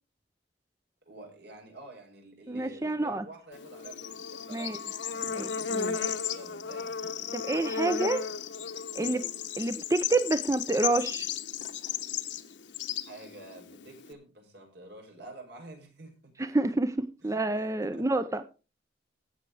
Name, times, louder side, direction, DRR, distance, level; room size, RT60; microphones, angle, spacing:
voice 1, 1.1-4.8 5.1-5.4 5.9-7.0 13.1-16.3 17.2-17.3 17.9-18.0, right 2 dB, 65° right, 5.7 m, -48 dB
voice 2, 2.5-3.2 4.5-4.8 5.2-5.9 7.3-8.3 9.0-9.3 9.6-11.3 16.4-18.5, right 2 dB, 15° right, 0.6 m, -28 dB
Bird / Insect, 3.5-14.1, left 7 dB, 80° left, 1.0 m, -35 dB
16.0 x 6.5 x 4.8 m
head